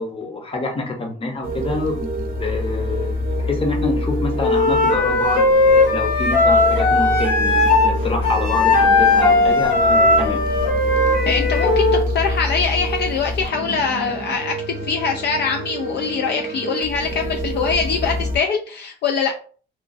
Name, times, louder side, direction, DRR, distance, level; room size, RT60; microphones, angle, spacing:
voice 1, 0.0-5.4 5.9-10.4, left 3 dB, 30° left, 3 dB, 0.8 m, -26 dB
sound 1, 1.4-18.4, equal, 45° right, 0.7 m, -26 dB
Wind instrument woodwind instrument, 4.4-7.9 8.2-12.0, left 2 dB, 90° left, 1.0 m, -17 dB
voice 2, 11.2-14.5 14.8-19.3, left 5 dB, 60° left, 3 dB, 0.4 m, -23 dB
3.1 x 2.1 x 2.5 m, 0.42 s
cardioid pair, 90°, 20 cm